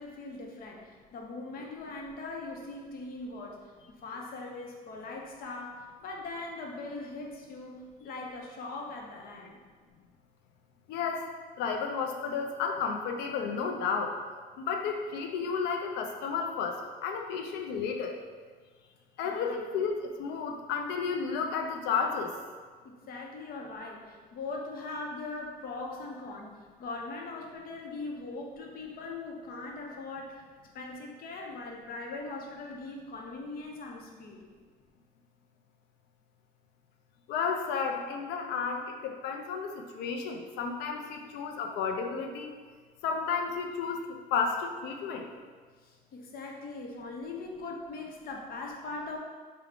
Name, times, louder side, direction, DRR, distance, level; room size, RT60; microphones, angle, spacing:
voice 1, 0.0-3.6 3.9-9.6 19.2-19.7 22.8-26.5 26.8-30.4 30.7-34.4 45.8-49.2, left 3 dB, 60° left, -1 dB, 0.8 m, -40 dB
voice 2, 10.9-11.2 11.6-14.1 14.6-18.1 19.2-22.3 37.3-42.5 43.0-45.3, left 5 dB, 90° left, 3 dB, 0.5 m, -32 dB
4.8 x 2.2 x 3.7 m, 1.5 s
cardioid pair, 110°, 17 cm